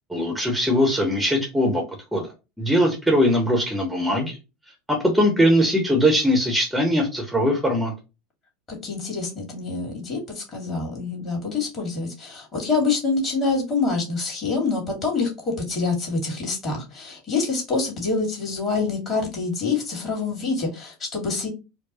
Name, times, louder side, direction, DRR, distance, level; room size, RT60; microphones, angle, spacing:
voice 1, 0.1-1.8 2.1-4.4 4.9-7.9, equal, 5° right, 1 dB, 1.1 m, -21 dB
voice 2, 8.7-21.5, left 4 dB, 35° left, 0 dB, 2.1 m, -26 dB
4.5 x 2.2 x 2.9 m, 0.27 s
figure-of-eight pair, 75°, 0 cm